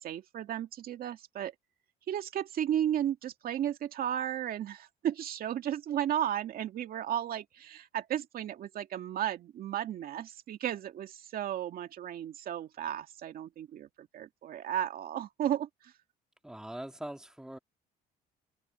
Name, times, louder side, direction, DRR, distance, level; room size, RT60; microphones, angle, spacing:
voice 1, 0.0-1.5 2.1-15.9, right 10 dB, 60° right, 2.2 m, -34 dB
voice 2, 16.4-17.6, right 1 dB, 5° right, 2.0 m, -42 dB
open air
cardioid pair, 110°, 17 cm